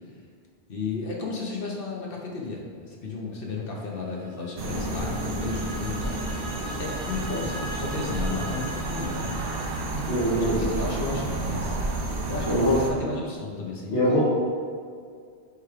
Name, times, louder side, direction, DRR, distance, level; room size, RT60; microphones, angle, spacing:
voice 1, 0.7-6.2 6.8-9.4 10.3-11.7 12.2-14.2, left 4 dB, 60° left, -2 dB, 1.0 m, -33 dB
sound 1, 3.8-11.0, right 1 dB, 40° right, 0.5 m, -41 dB
sound 2, 4.6-12.9, right 2 dB, 65° right, 0.9 m, -31 dB
voice 2, 9.9-10.7 12.4-12.8 13.9-14.2, equal, 85° left, -12 dB, 2.0 m, -23 dB
9.5 x 3.5 x 3.3 m, 2.2 s
omnidirectional pair, 1.1 m